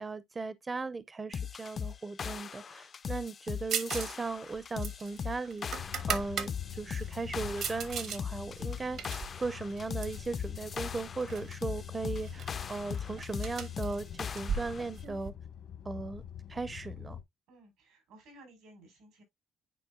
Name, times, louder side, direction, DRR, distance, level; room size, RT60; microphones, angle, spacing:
voice 1, 0.0-15.3 15.8-16.2 16.5-17.2, right 3 dB, 25° right, 0.5 m, -37 dB
sound 1, 1.3-14.9, left 7 dB, 45° left, 0.4 m, -39 dB
sound 2, 3.7-4.2 4.4-6.5 7.0-8.2 8.6-10.3 10.9-11.5 11.8-11.9 12.2-15.3, right 7 dB, 70° right, 1.3 m, -38 dB
sound 3, 5.7-17.2, left 9 dB, 75° left, 1.1 m, -45 dB
voice 2, 17.5-19.2, right 1 dB, 85° right, 4.0 m, -57 dB
9.9 x 4.3 x 2.3 m
cardioid pair, 100°, 0 cm